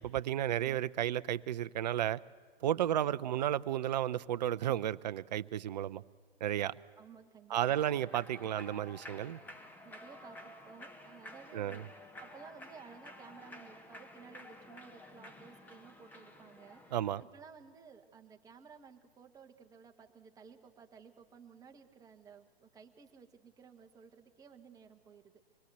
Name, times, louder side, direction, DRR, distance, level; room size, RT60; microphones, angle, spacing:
voice 1, 0.0-2.2 2.6-6.0 6.4-6.7 7.5-9.4 11.5-11.8 16.9-17.2, right 11 dB, 45° right, 15 dB, 0.6 m, -33 dB
voice 2, 7.0-7.8 9.6-11.9 12.2-16.8 17.2-25.4, right 6 dB, 10° right, 5 dB, 1.3 m, -56 dB
Human voice / Clapping / Cheering, 7.5-17.2, left 1 dB, 5° left, 1.0 m, -52 dB
25.0 x 21.5 x 8.0 m, 1.5 s
figure-of-eight pair, 120°, 31 cm